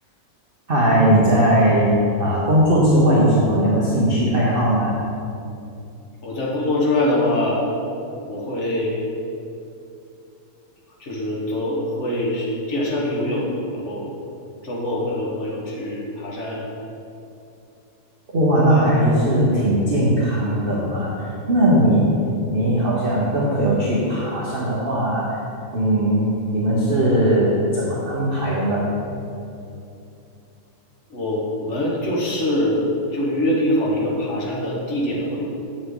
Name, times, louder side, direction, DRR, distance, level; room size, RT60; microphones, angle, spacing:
voice 1, 0.7-5.0 18.3-21.1 21.5-22.2 22.5-25.4 25.7-26.2 26.5-28.8, right 1 dB, 40° right, -6 dB, 0.9 m, -18 dB
voice 2, 6.2-7.6 8.3-9.0 11.0-14.2 14.6-16.7 18.7-18.8 31.1-32.8 33.1-35.4, left 1 dB, 40° left, -4 dB, 1.6 m, -24 dB
7.5 x 6.8 x 3.8 m, 2.7 s
omnidirectional pair, 2.1 m